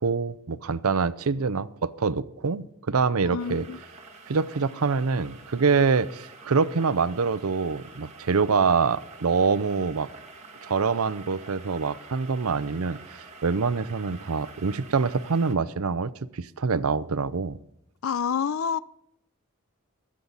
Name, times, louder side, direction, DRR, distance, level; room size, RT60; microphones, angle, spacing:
voice 1, 0.0-3.6 4.3-10.1 10.6-17.6, right 5 dB, 80° right, 16 dB, 0.6 m, -25 dB
voice 2, 3.2-3.8 18.0-18.8, left 7 dB, 65° left, 18 dB, 0.4 m, -28 dB
sound 1, 3.4-15.5, right 4 dB, 30° right, 1.8 m, -47 dB
22.0 x 8.6 x 4.0 m, 0.74 s
head